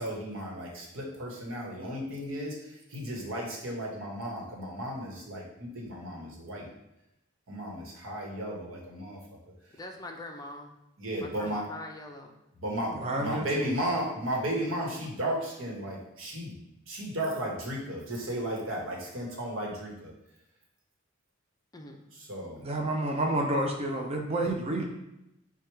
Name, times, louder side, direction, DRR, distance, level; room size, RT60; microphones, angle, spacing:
voice 1, 0.0-2.6 2.9-6.7 7.5-9.2 11.0-11.7 12.6-16.5 16.9-20.1 22.1-22.6, right 1 dB, 90° right, -2 dB, 1.1 m, -34 dB
voice 2, 9.7-10.7 11.2-12.3 21.7-22.0, left 2 dB, 20° left, 2 dB, 0.4 m, -43 dB
voice 3, 12.9-13.7 22.6-24.9, right 1 dB, 30° right, 1 dB, 0.5 m, -29 dB
4.6 x 2.3 x 4.5 m, 0.87 s
head